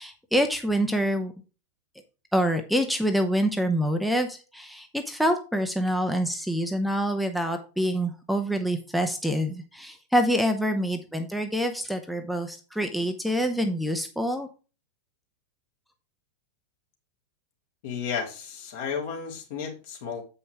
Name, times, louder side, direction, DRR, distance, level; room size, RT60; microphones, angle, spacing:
voice 1, 0.0-1.3 2.3-14.5, equal, ahead, 5 dB, 0.8 m, -26 dB
voice 2, 17.8-20.2, left 6 dB, 50° left, 1 dB, 2.8 m, -33 dB
8.0 x 5.5 x 4.7 m, 0.34 s
figure-of-eight pair, 90°, 0 cm